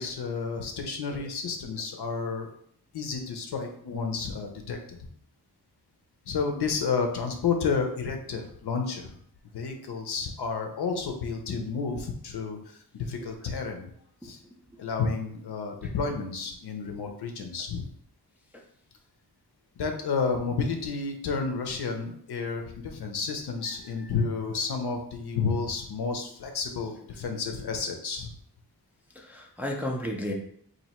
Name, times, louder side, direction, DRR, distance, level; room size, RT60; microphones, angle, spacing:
voice 1, 0.0-2.5 2.9-5.0 6.3-9.2 9.5-13.9 14.2-14.4 14.8-17.9 19.8-28.3, left 5 dB, 75° left, 4 dB, 0.7 m, -31 dB
voice 2, 29.1-30.3, left 1 dB, 5° right, -1 dB, 0.4 m, -34 dB
3.0 x 2.7 x 4.2 m, 0.64 s
wide cardioid pair, 170°, 39 cm